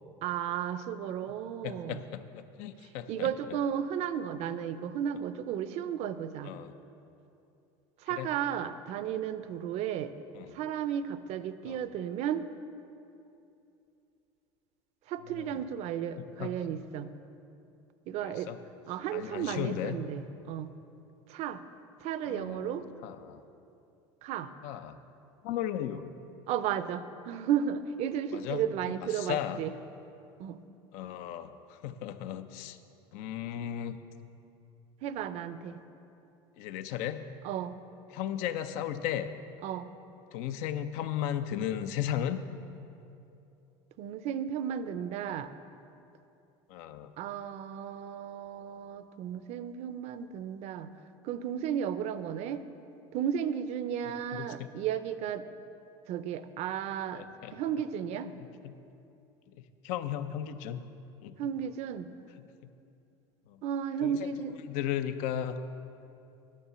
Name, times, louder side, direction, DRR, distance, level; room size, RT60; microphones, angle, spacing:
voice 1, 0.2-2.0 3.1-6.5 8.0-10.1 10.5-12.5 15.1-17.1 18.1-18.5 18.9-20.7 21.3-21.6 22.0-22.8 24.2-24.5 26.5-29.7 30.4-30.6 35.0-35.8 37.4-37.8 39.6-39.9 44.0-45.5 47.2-50.9 51.2-52.7 53.1-55.5 56.1-57.2 57.5-58.3 61.4-62.1 63.6-64.5, right 9 dB, 60° right, 12 dB, 0.5 m, -34 dB
voice 2, 1.6-3.3 6.4-6.7 8.1-8.3 10.3-10.5 11.6-11.8 15.3-15.6 16.2-16.6 18.2-18.6 19.1-20.0 22.3-23.4 24.6-25.0 25.4-26.1 28.3-29.6 30.9-32.8 33.1-34.0 36.6-37.3 38.1-39.3 40.3-42.4 46.7-47.1 54.3-54.7 57.1-57.5 58.2-58.7 59.6-60.8 61.2-61.4 63.5-63.6 64.0-64.3 64.6-65.6, left 10 dB, 70° left, 11 dB, 0.5 m, -36 dB
9.9 x 5.7 x 6.8 m, 2.7 s
supercardioid pair, 100°, 13 cm